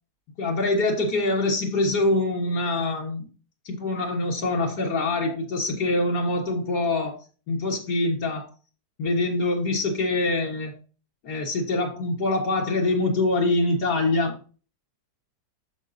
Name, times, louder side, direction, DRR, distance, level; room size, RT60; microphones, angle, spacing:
voice 1, 0.4-3.3 3.7-7.2 7.5-8.5 9.0-10.7 11.2-14.4, left 2 dB, 75° left, -2 dB, 1.9 m, -24 dB
9.8 x 7.4 x 2.7 m, 0.36 s
omnidirectional pair, 1.8 m